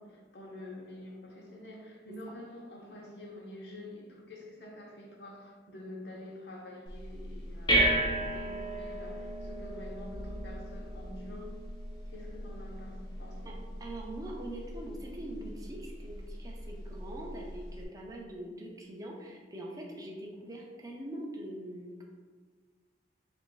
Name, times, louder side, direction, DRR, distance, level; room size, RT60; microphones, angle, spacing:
voice 1, 0.0-11.5 12.1-13.6 15.4-15.5 15.8-15.9, left 1 dB, 65° left, -1 dB, 0.8 m, -47 dB
sound 1, 6.9-17.8, right 1 dB, 25° left, 0.6 m, -35 dB
voice 2, 13.8-22.0, right 1 dB, 20° right, -1 dB, 0.5 m, -43 dB
3.4 x 2.5 x 3.8 m, 1.5 s
head